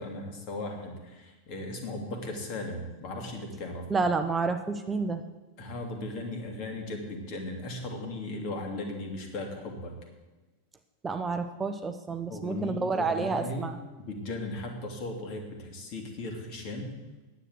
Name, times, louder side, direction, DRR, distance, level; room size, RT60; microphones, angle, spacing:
voice 1, 0.0-4.0 5.6-9.9 12.3-13.7 14.0-16.9, left 2 dB, 40° left, 3 dB, 2.4 m, -37 dB
voice 2, 3.9-5.2 11.0-13.8, right 4 dB, 15° right, 7 dB, 0.6 m, -29 dB
9.9 x 7.8 x 7.9 m, 1.2 s
figure-of-eight pair, 90°, 0 cm